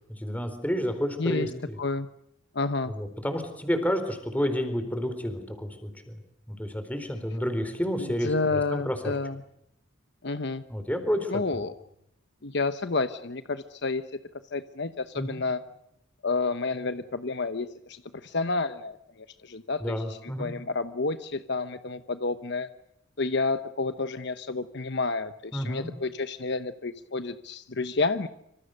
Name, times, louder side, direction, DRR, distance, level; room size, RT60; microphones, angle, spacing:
voice 1, 0.2-1.5 2.9-6.2 6.5-8.9 10.7-11.3 15.2-15.4 19.8-20.5 25.5-25.9, equal, 10° left, 8 dB, 4.2 m, -30 dB
voice 2, 1.2-1.5 1.8-2.1 2.5-2.9 8.0-9.4 10.2-10.6 11.3-11.7 12.4-14.2 14.5-15.6 16.2-22.7 23.2-28.3, left 3 dB, 60° left, 11 dB, 1.0 m, -30 dB
26.5 x 26.0 x 6.6 m, 0.77 s
head